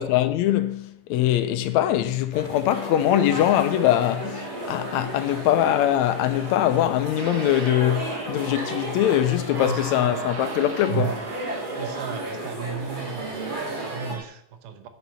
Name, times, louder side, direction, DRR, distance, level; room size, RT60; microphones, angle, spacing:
voice 1, 0.0-11.3, left 12 dB, 75° left, 1.8 m, -22 dB
sound 1, 2.3-14.2, right 1 dB, 25° right, 1.2 m, -34 dB
sound 2, 7.2-14.2, right 6 dB, 45° right, 1.6 m, -35 dB
voice 2, 9.6-10.3 11.8-14.9, right 6 dB, 90° right, 2.5 m, -36 dB
9.6 x 6.2 x 6.7 m
omnidirectional pair, 3.5 m